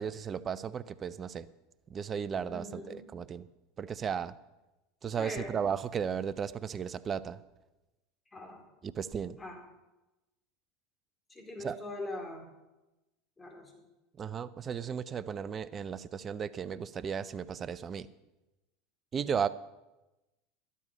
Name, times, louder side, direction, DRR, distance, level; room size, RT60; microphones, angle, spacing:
voice 1, 0.0-1.5 1.9-3.5 3.8-4.3 5.0-7.4 8.8-9.4 11.6-11.8 14.2-18.1 19.1-19.5, right 7 dB, 35° right, 16 dB, 0.6 m, -35 dB
voice 2, 2.5-3.0 5.2-5.5 8.3-8.6 9.4-9.6 11.3-12.5 13.4-13.9, left 2 dB, 15° left, 1 dB, 3.8 m, -42 dB
12.5 x 11.5 x 5.5 m, 1.0 s
hypercardioid pair, 90°, 0 cm